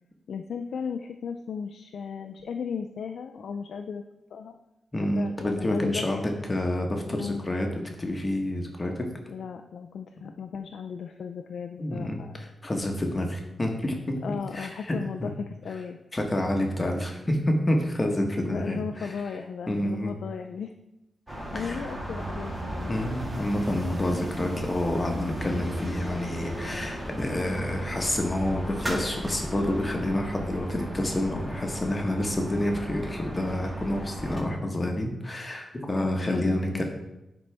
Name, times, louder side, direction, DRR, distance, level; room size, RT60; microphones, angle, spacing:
voice 1, 0.3-4.0 4.3-4.6 5.0-6.0 7.2-7.5 9.3-12.4 14.2-16.0 18.5-20.7 21.3-23.0 36.0-36.8, left 6 dB, 80° left, 5 dB, 0.3 m, -35 dB
voice 2, 4.9-7.7 8.0-9.1 11.8-14.2 14.5-15.3 16.1-19.2 19.7-20.1 21.5-21.9 22.9-36.8, left 1 dB, 30° left, 2 dB, 1.2 m, -28 dB
sound 1, 21.3-34.4, equal, 25° right, 2.0 m, -35 dB
9.7 x 4.0 x 3.4 m, 0.93 s
cardioid pair, 65°, 0 cm